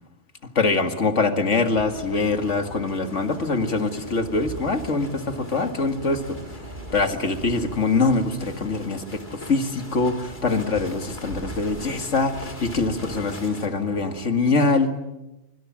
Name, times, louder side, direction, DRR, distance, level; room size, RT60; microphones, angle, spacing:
voice 1, 0.6-6.4 6.9-14.9, left 3 dB, 85° left, 7 dB, 2.4 m, -23 dB
sound 1, 1.5-13.7, left 2 dB, 40° left, 3.1 m, -44 dB
sound 2, 1.7-14.3, right 2 dB, 40° right, 2.3 m, -40 dB
25.5 x 24.5 x 7.5 m, 0.97 s
omnidirectional pair, 1.2 m